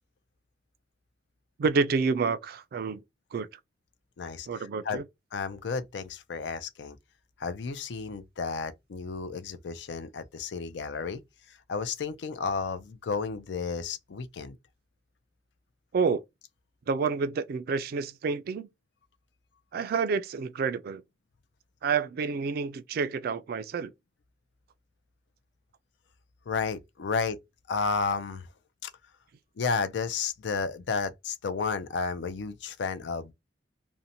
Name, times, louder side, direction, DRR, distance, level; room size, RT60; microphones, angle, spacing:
voice 1, 1.6-3.0 3.3-3.5 4.5-5.0 15.9-16.2 16.9-18.7 19.7-21.0 21.8-23.9, right 5 dB, 55° right, 0.3 m, -28 dB
voice 2, 4.2-5.0 5.3-7.0 7.4-11.2 11.5-14.6 26.5-27.4 27.7-28.5 28.8-28.9 29.6-33.3, left 5 dB, 70° left, 0.4 m, -32 dB
2.6 x 2.1 x 2.7 m
head